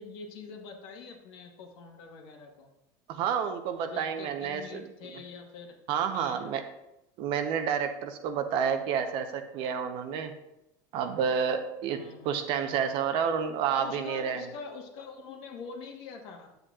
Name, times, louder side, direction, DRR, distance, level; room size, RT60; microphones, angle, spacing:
voice 1, 0.0-2.7 3.8-5.8 6.1-6.5 12.0-12.4 13.8-16.5, left 4 dB, 65° left, 2 dB, 1.5 m, -45 dB
voice 2, 3.1-4.9 5.9-6.6 7.2-10.3 10.9-14.4, right 7 dB, 60° right, 7 dB, 0.9 m, -30 dB
9.3 x 7.8 x 2.5 m, 0.89 s
supercardioid pair, 130°, 10 cm